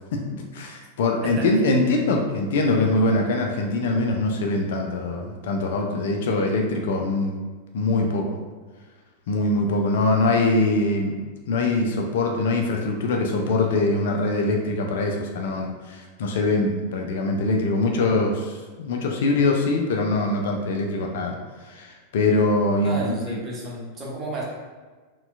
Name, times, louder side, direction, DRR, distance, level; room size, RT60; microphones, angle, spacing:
voice 1, 0.1-7.4 7.7-8.3 9.3-11.1 11.5-21.3 21.7-23.4, left 2 dB, 55° left, 1 dB, 0.4 m, -23 dB
voice 2, 22.8-24.4, right 1 dB, 25° right, -3 dB, 0.9 m, -32 dB
4.2 x 2.3 x 2.5 m, 1.4 s
figure-of-eight pair, 90°, 0 cm